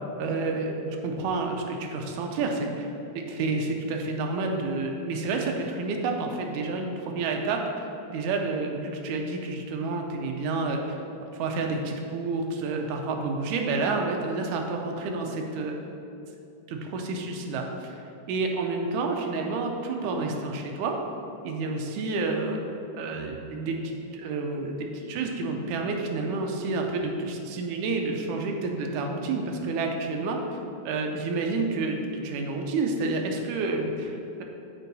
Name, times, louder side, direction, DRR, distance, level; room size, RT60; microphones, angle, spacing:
voice 1, 0.2-2.9 3.3-11.0 11.3-15.8 16.7-18.0 18.3-21.0 21.4-22.6 22.9-30.4 30.8-34.4, right 3 dB, 85° right, 2 dB, 2.1 m, -29 dB
8.5 x 4.5 x 4.0 m, 2.7 s
omnidirectional pair, 3.4 m